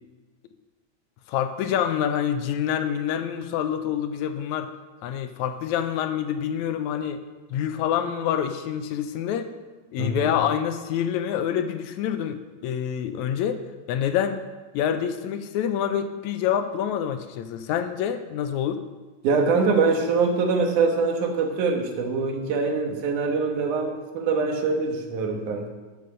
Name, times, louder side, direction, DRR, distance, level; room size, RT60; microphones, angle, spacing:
voice 1, 1.3-4.7 5.0-7.2 7.5-9.5 9.9-13.6 13.9-14.4 14.7-18.8, left 9 dB, 80° left, 9 dB, 2.0 m, -26 dB
voice 2, 10.0-10.3 19.2-25.7, right 4 dB, 85° right, 3 dB, 2.8 m, -24 dB
13.0 x 6.9 x 5.6 m, 1.2 s
omnidirectional pair, 3.4 m